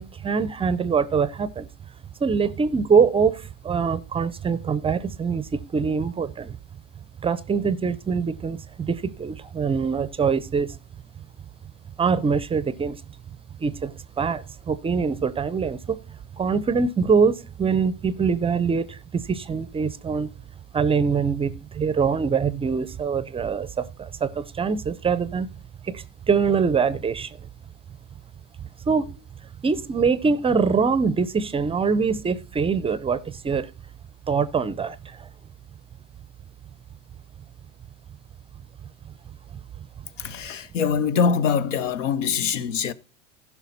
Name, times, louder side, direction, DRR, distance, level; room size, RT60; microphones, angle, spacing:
voice 1, 0.0-1.7 2.2-6.6 7.2-10.8 12.0-13.0 13.6-16.0 16.4-20.3 20.7-25.5 25.8-27.5 28.9-29.1 29.6-33.7 34.3-35.3, right 5 dB, 15° right, 0.5 m, -24 dB
voice 2, 40.2-42.9, left 6 dB, 80° left, 0.9 m, -23 dB
15.5 x 5.7 x 4.1 m
hypercardioid pair, 95°, 37 cm